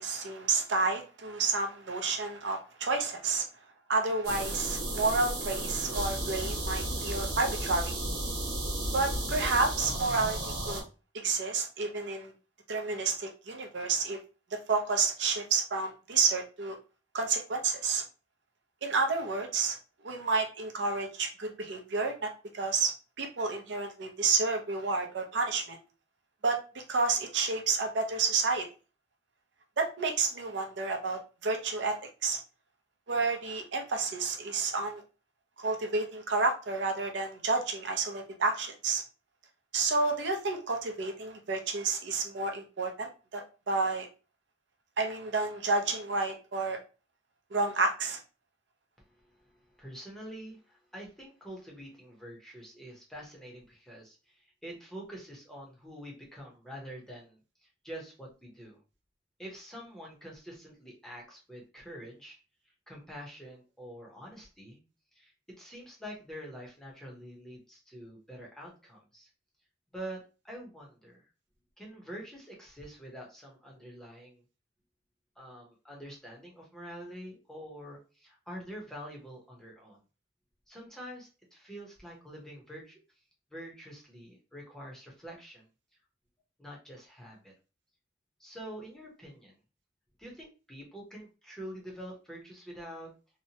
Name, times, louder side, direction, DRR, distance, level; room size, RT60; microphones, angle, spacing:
voice 1, 0.0-3.5 3.9-7.9 8.9-10.4 10.7-10.8 11.2-12.3 12.7-14.2 14.5-16.8 17.1-18.0 18.8-19.8 20.0-22.9 23.2-25.8 26.4-28.7 29.8-32.4 33.1-35.0 35.6-39.0 39.7-44.1 45.0-46.8 47.5-48.2, right 4 dB, 75° right, 4 dB, 0.6 m, -30 dB
sound 1, 4.2-10.8, right 1 dB, 55° right, 1.1 m, -33 dB
voice 2, 49.0-58.8 59.4-62.4 62.9-64.8 65.1-69.3 69.9-71.3 71.8-74.4 75.4-80.0 80.7-83.0 83.5-85.7 86.6-87.5 88.4-89.6 90.2-93.1, equal, 5° left, -2 dB, 0.7 m, -46 dB
2.8 x 2.1 x 2.7 m, 0.33 s
head